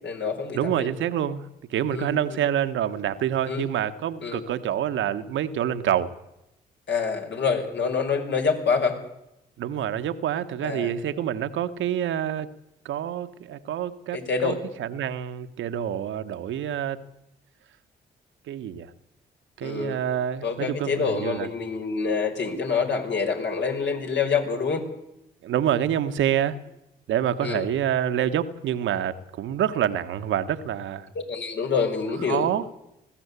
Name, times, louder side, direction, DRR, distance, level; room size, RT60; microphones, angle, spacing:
voice 1, 0.0-0.9 1.9-2.1 3.5-3.7 4.2-4.4 6.9-8.9 10.6-10.9 14.1-14.6 19.6-20.0 20.4-24.8 27.4-27.6 31.2-32.5, left 5 dB, 60° left, 5.2 m, -26 dB
voice 2, 0.5-6.2 9.6-12.5 12.8-17.0 18.5-18.9 19.6-21.5 25.4-26.6 27.1-31.1 32.3-32.6, right 10 dB, 70° right, 1.4 m, -27 dB
20.5 x 15.5 x 8.3 m
hypercardioid pair, 50°, 21 cm